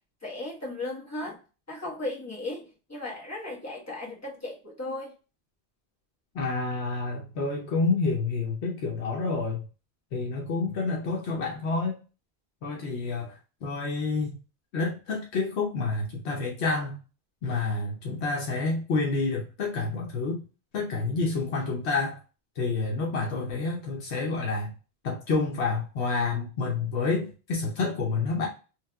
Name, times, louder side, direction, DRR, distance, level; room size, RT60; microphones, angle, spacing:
voice 1, 0.2-1.4 1.7-5.1, left 2 dB, 15° left, -4 dB, 1.1 m, -36 dB
voice 2, 6.3-9.6 10.1-12.0 12.6-14.3 14.7-17.0 17.4-20.4 20.7-22.2 22.6-24.7 25.0-28.5, left 3 dB, 80° left, 0 dB, 1.0 m, -28 dB
3.1 x 3.1 x 2.2 m, 0.33 s
omnidirectional pair, 1.1 m